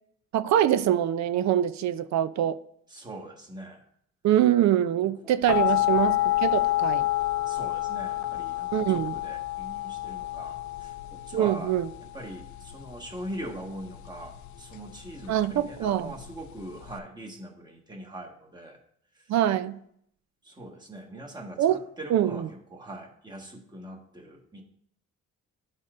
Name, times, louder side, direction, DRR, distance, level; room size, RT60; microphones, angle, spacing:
voice 1, 0.3-2.6 4.2-7.1 8.7-9.1 11.3-11.9 15.3-16.1 19.3-19.8 21.6-21.8 22.1-22.5, right 11 dB, 65° right, 0.5 m, -24 dB
voice 2, 2.9-3.8 5.2-5.4 5.8-6.2 7.5-11.7 12.1-18.8 19.1-19.3 20.4-22.5 22.7-24.6, right 1 dB, 15° right, 1.4 m, -41 dB
sound 1, 5.5-17.0, left 15 dB, 70° left, 0.5 m, -29 dB
11.5 x 4.1 x 2.5 m
cardioid pair, 90°, 30 cm